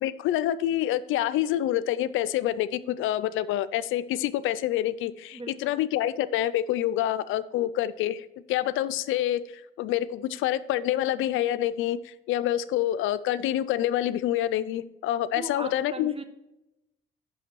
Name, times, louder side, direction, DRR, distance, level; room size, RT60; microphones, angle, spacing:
voice 1, 0.0-16.1, left 12 dB, 85° left, 14 dB, 0.4 m, -27 dB
voice 2, 5.3-5.8 15.3-16.2, right 2 dB, 30° right, 8 dB, 1.1 m, -39 dB
6.0 x 5.6 x 6.0 m, 0.94 s
cardioid pair, 90°, 20 cm